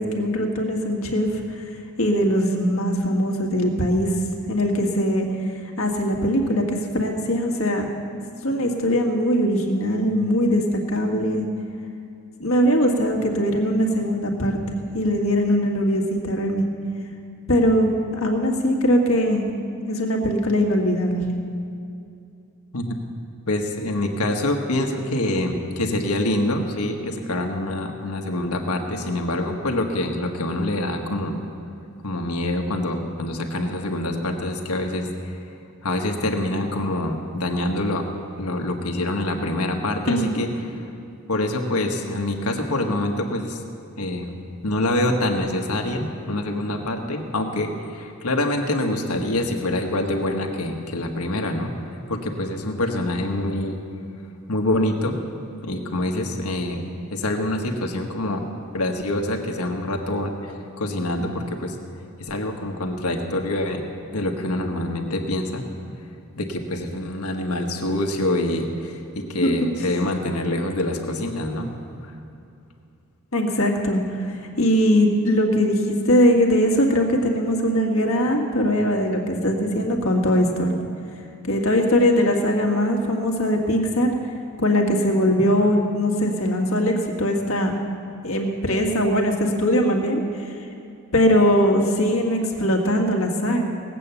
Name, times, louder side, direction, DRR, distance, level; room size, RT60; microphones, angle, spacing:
voice 1, 0.0-1.6 2.0-4.1 4.5-5.3 5.8-7.9 8.4-11.5 12.4-14.6 14.9-16.6 17.5-19.4 19.9-21.3 40.1-40.4 69.4-69.5 73.3-80.8 81.4-84.1 84.6-87.8 88.2-90.5 91.1-93.6, equal, 65° left, 1 dB, 1.8 m, -21 dB
voice 2, 23.5-31.4 32.0-35.4 35.8-38.1 38.4-40.5 41.3-43.6 44.0-44.3 44.6-51.7 52.1-53.8 54.5-55.2 55.6-56.8 57.1-58.5 58.7-61.7 62.2-63.8 64.1-65.6 66.4-71.7 72.0-72.1, left 1 dB, 85° left, 3 dB, 1.4 m, -25 dB
18.5 x 8.4 x 7.0 m, 2.5 s
head